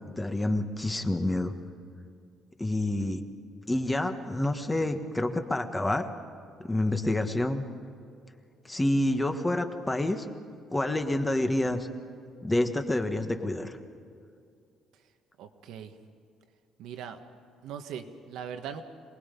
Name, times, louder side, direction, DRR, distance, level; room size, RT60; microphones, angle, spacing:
voice 1, 0.2-1.5 2.6-3.2 3.7-6.1 6.7-7.6 8.7-10.2 10.7-11.9 12.4-13.8, left 1 dB, 10° left, 6 dB, 1.5 m, -28 dB
voice 2, 15.4-15.9 16.8-17.2 17.6-18.8, right 8 dB, 80° right, 7 dB, 1.6 m, -40 dB
27.0 x 20.0 x 5.4 m, 2.5 s
cardioid pair, 130°, 0 cm